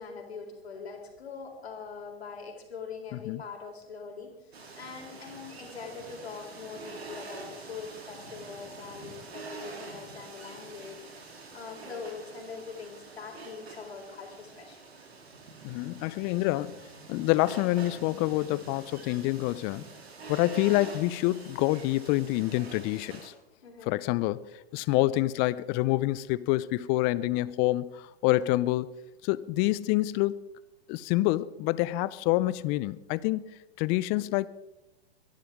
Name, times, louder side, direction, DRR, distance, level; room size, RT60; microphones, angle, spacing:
voice 1, 0.0-14.8 23.6-24.0, left 5 dB, 75° left, 3.9 m, -43 dB
sound 1, 4.5-23.3, right 3 dB, 75° right, 3.4 m, -46 dB
voice 2, 15.6-16.8 17.1-19.8 20.3-23.3 23.9-28.9 29.2-30.4 30.9-34.5, left 17 dB, 30° left, 0.6 m, -27 dB
24.0 x 11.5 x 3.6 m
hypercardioid pair, 110°, 32 cm